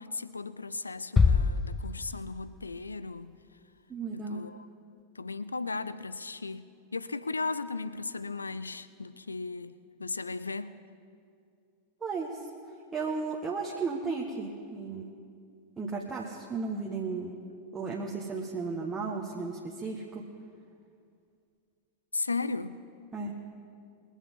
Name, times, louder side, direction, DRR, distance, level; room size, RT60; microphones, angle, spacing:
voice 1, 0.0-3.4 4.1-4.7 5.2-10.8 22.1-22.8, left 3 dB, 80° left, 15 dB, 0.5 m, -36 dB
sound 1, 1.2-2.7, left 5 dB, 15° left, 0.5 m, -26 dB
voice 2, 3.9-4.4 12.0-12.5 12.9-15.1 15.8-17.3 17.7-20.2 23.1-23.3, right 4 dB, 15° right, -3 dB, 1.4 m, -34 dB
22.0 x 8.2 x 5.5 m, 2.4 s
figure-of-eight pair, 90°, 0 cm